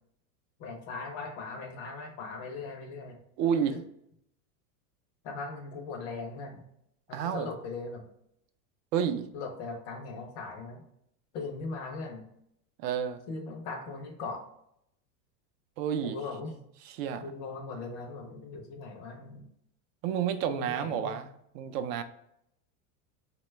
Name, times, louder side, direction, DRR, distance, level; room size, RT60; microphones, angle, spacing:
voice 1, 0.6-3.2 3.7-3.8 5.2-6.6 7.1-8.0 9.3-10.8 11.3-12.2 13.3-14.4 16.0-16.6 17.2-19.5 20.6-21.2, left 3 dB, 35° left, 3 dB, 0.4 m, -39 dB
voice 2, 3.4-3.8 7.1-7.5 8.9-9.2 12.8-13.2 15.8-16.2 17.0-17.2 20.0-21.3 21.5-22.0, right 8 dB, 75° right, 9 dB, 0.5 m, -30 dB
2.9 x 2.2 x 3.2 m, 0.74 s
supercardioid pair, 145°, 49 cm